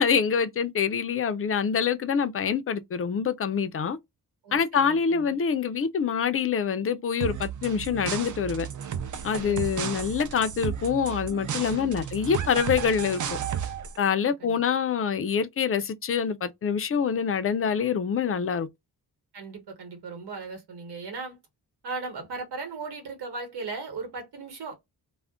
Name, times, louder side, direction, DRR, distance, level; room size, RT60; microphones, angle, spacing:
voice 1, 0.0-4.0 4.5-8.7 9.2-13.2 14.0-18.7, left 7 dB, 35° left, 0.4 m, -25 dB
voice 2, 4.4-5.4 9.3-10.0 11.6-12.0 14.4-14.6 19.3-21.4 21.8-24.9, right 4 dB, 85° right, 1.2 m, -38 dB
sound 1, 7.2-14.0, right 8 dB, 50° right, 0.5 m, -33 dB
2.4 x 2.1 x 3.5 m
wide cardioid pair, 135°, 39 cm